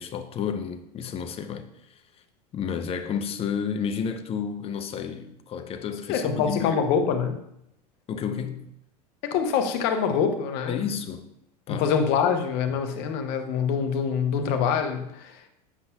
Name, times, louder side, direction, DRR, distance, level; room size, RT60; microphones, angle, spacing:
voice 1, 0.0-2.0 2.5-6.7 8.1-8.7 10.7-11.2 11.7-11.9, left 7 dB, 30° left, 0.6 m, -31 dB
voice 2, 6.1-7.4 9.2-10.8 11.7-15.5, left 6 dB, 55° left, 0.9 m, -25 dB
8.3 x 5.4 x 2.3 m
hypercardioid pair, 95°, 20 cm